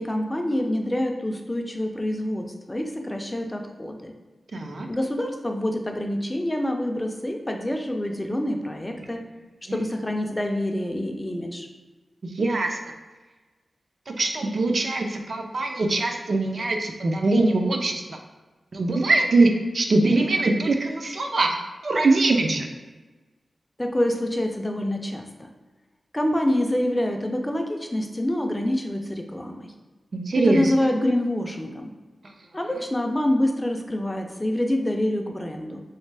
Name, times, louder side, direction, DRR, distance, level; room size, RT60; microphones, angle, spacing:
voice 1, 0.0-4.1 4.9-9.3 9.7-11.7 23.8-25.5 26.1-29.7 30.4-31.9 32.5-35.8, left 1 dB, 15° left, 3 dB, 0.4 m, -26 dB
voice 2, 4.5-4.9 9.7-9.8 12.3-12.8 14.1-18.2 18.7-21.5 21.8-22.7 30.1-30.7, right 2 dB, 55° right, 3 dB, 0.4 m, -22 dB
3.2 x 3.2 x 3.3 m, 1.3 s
wide cardioid pair, 150°, 0 cm